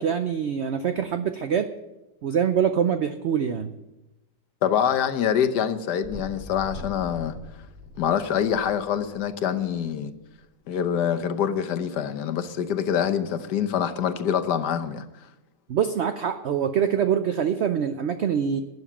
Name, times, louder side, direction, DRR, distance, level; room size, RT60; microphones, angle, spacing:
voice 1, 0.0-1.7 2.2-3.7 15.7-18.6, right 8 dB, 65° right, 9 dB, 0.7 m, -24 dB
voice 2, 4.6-7.3 8.0-10.1 10.7-15.0, left 8 dB, 80° left, 9 dB, 1.5 m, -25 dB
sound 1, 6.0-9.8 10.4-10.5, left 2 dB, 30° right, 4.2 m, -42 dB
12.0 x 7.9 x 7.2 m, 0.98 s
omnidirectional pair, 1.8 m